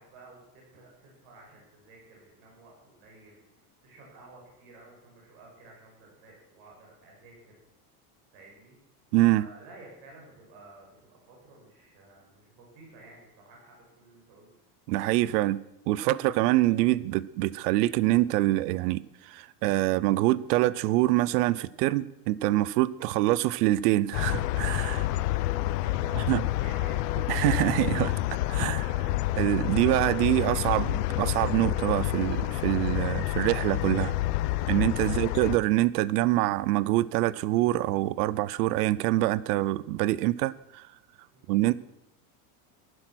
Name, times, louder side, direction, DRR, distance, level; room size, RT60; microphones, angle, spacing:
voice 1, 0.0-7.6 8.3-8.8 9.3-14.5 24.9-27.2 35.0-35.3 41.3-41.5, right 2 dB, 50° right, 6.7 m, -53 dB
voice 2, 9.1-9.5 14.9-25.0 26.3-26.4 27.3-28.2 28.5-29.1 29.4-34.1 34.7-40.9 41.5-41.7, right 16 dB, 75° right, 0.7 m, -25 dB
sound 1, 24.1-35.6, left 16 dB, 75° left, 0.9 m, -28 dB
15.0 x 11.5 x 6.2 m
supercardioid pair, 165°, 47 cm